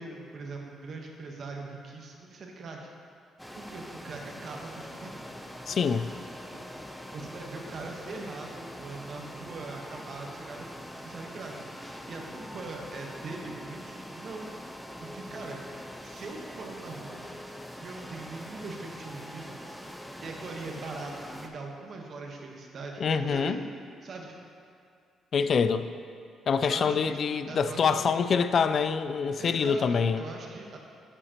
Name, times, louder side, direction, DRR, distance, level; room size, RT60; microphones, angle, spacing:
voice 1, 0.0-2.9 3.5-5.2 6.5-10.7 10.9-14.5 15.0-15.6 16.0-17.3 17.8-23.7 24.0-24.4 26.6-27.0 27.3-28.0 29.4-30.8, right 3 dB, 55° right, 1 dB, 1.1 m, -41 dB
sound 1, 3.4-21.5, equal, ahead, 0.6 m, -43 dB
voice 2, 5.7-6.1 23.0-23.6 25.3-25.9 26.5-30.2, left 6 dB, 55° left, 11 dB, 0.3 m, -25 dB
10.0 x 6.8 x 2.9 m, 2.3 s
cardioid pair, 90°, 0 cm